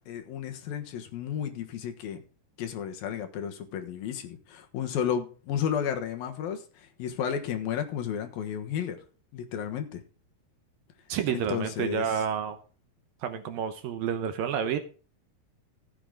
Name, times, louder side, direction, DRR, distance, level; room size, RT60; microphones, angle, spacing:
voice 1, 0.1-2.2 2.6-9.0 9.3-10.0 11.3-12.2, left 8 dB, 70° left, 7 dB, 2.9 m, -33 dB
voice 2, 11.1-12.6 13.2-14.8, right 8 dB, 70° right, 9 dB, 2.4 m, -29 dB
15.5 x 8.0 x 3.7 m, 0.37 s
omnidirectional pair, 4.7 m